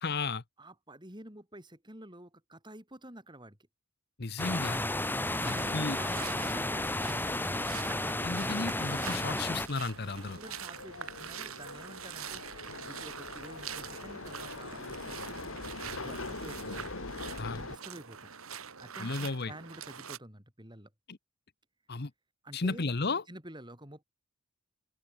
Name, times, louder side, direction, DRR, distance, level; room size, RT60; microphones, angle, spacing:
voice 1, 0.0-0.4 4.2-4.8 5.4-6.0 8.2-10.4 17.4-17.6 19.0-19.5 21.1-21.2 21.9-22.1 22.5-23.2, left 3 dB, 50° left, 1.0 m, -34 dB
voice 2, 0.6-3.6 5.2-7.3 10.2-12.4 12.8-15.7 16.0-16.9 17.5-18.3 18.8-20.9 22.4-22.9 23.3-24.0, right 1 dB, 20° right, 6.6 m, -49 dB
sound 1, 4.4-9.7, left 1 dB, 10° left, 2.5 m, -32 dB
sound 2, 5.0-20.2, right 8 dB, 80° right, 2.2 m, -45 dB
sound 3, 5.4-17.8, left 3 dB, 70° left, 2.7 m, -45 dB
open air
head